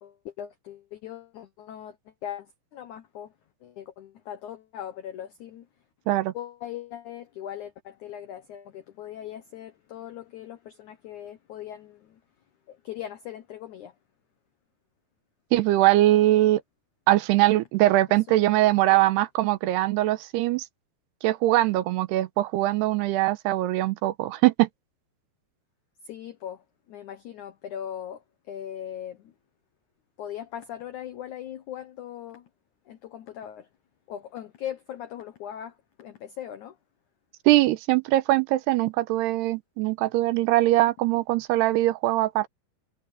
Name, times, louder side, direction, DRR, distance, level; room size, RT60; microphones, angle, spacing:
voice 1, 0.0-3.3 3.6-5.7 6.3-12.2 12.7-13.9 18.3-19.0 26.0-29.3 30.2-32.5 32.8-33.7 34.1-36.8, left 10 dB, 80° left, 1.7 m, -40 dB
voice 2, 15.5-16.6 17.1-20.7 21.2-24.7 37.5-42.5, right 16 dB, 80° right, 2.8 m, -22 dB
omnidirectional pair, 4.9 m